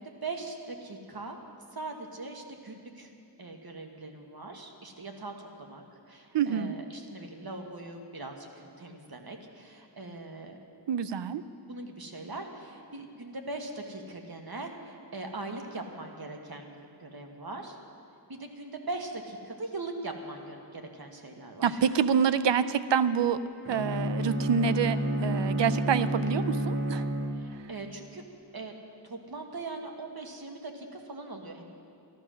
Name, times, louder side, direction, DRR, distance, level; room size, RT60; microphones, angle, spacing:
voice 1, 0.0-1.4 1.7-3.1 3.4-10.6 11.7-17.8 18.3-21.9 27.3-28.2 28.5-28.7 29.0-31.6, right 2 dB, 60° right, 3 dB, 1.5 m, -41 dB
voice 2, 6.3-6.8 10.9-11.4 21.6-23.4 23.7-27.0, right 7 dB, 85° right, 14 dB, 0.6 m, -27 dB
Bowed string instrument, 23.6-27.8, right 1 dB, 30° right, 1.7 m, -30 dB
14.0 x 11.5 x 6.3 m, 2.4 s
wide cardioid pair, 60°, 42 cm